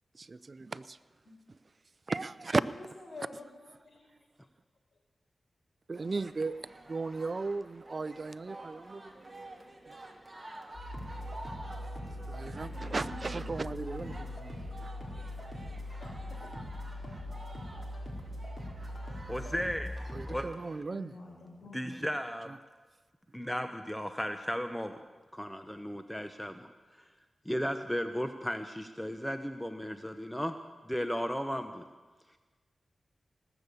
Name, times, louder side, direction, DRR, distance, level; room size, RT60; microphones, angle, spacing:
voice 1, 0.2-1.0 2.1-2.6 5.9-6.6 6.9-9.5 9.9-10.0 12.3-14.1 20.1-21.1, right 3 dB, 50° right, 16 dB, 0.5 m, -35 dB
voice 2, 2.7-4.1 12.6-13.5 14.0-14.5 16.0-16.6 19.3-19.9 20.9-22.0, left 2 dB, 60° left, 0 dB, 4.7 m, -49 dB
sound 1, 5.9-20.8, right 2 dB, 35° right, 1.8 m, -50 dB
sound 2, 10.7-20.4, left 1 dB, 35° left, 4.9 m, -41 dB
voice 3, 19.3-19.9 20.3-20.5 21.7-22.5 23.3-25.0 25.3-26.7 27.0-27.1 27.4-30.6 30.8-31.8, equal, 5° left, 8 dB, 0.8 m, -35 dB
18.5 x 7.0 x 8.3 m, 1.3 s
cardioid pair, 50°, 0 cm